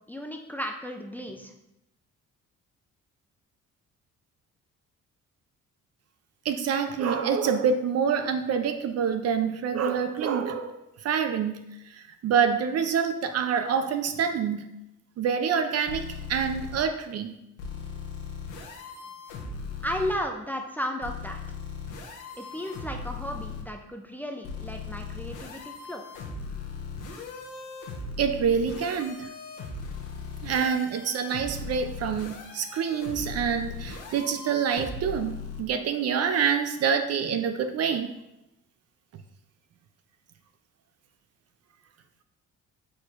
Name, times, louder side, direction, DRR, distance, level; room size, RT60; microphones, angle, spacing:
voice 1, 0.1-1.5 19.8-21.4 22.4-26.0, equal, 5° left, 3 dB, 0.4 m, -34 dB
voice 2, 6.5-10.8 11.0-11.6 12.2-14.6 15.2-17.3 28.2-29.3 30.4-38.1, right 7 dB, 55° right, 8 dB, 0.5 m, -26 dB
sound 1, 15.9-16.8 17.6-20.1 21.0-23.6 24.4-35.6, left 4 dB, 85° left, 0.8 m, -38 dB
4.3 x 4.2 x 2.5 m, 0.88 s
cardioid pair, 90°, 30 cm